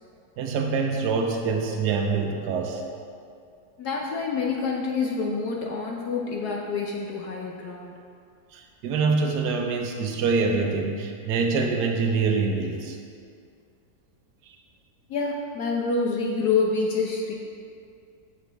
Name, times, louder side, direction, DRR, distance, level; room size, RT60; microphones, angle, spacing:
voice 1, 0.4-2.8 8.5-13.0, right 4 dB, 75° right, 3 dB, 1.3 m, -25 dB
voice 2, 3.8-7.9 15.1-17.3, left 4 dB, 70° left, -1 dB, 1.3 m, -27 dB
15.0 x 5.1 x 3.4 m, 2.4 s
omnidirectional pair, 1.8 m